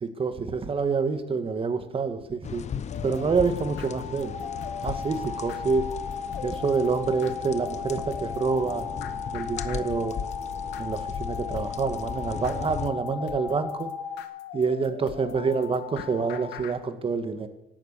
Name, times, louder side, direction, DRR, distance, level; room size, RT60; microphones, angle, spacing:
voice 1, 0.0-2.6 3.0-4.3 4.8-5.9 6.4-8.9 9.3-10.2 10.8-13.9 14.5-17.5, right 5 dB, 35° right, 9 dB, 2.0 m, -27 dB
sound 1, 2.4-12.9, left 7 dB, 45° left, 1.0 m, -37 dB
sound 2, 2.9-16.8, left 10 dB, 80° left, 1.8 m, -41 dB
sound 3, 4.3-14.2, left 5 dB, 20° left, 2.3 m, -36 dB
17.5 x 12.0 x 6.9 m, 0.92 s
cardioid pair, 110°, 17 cm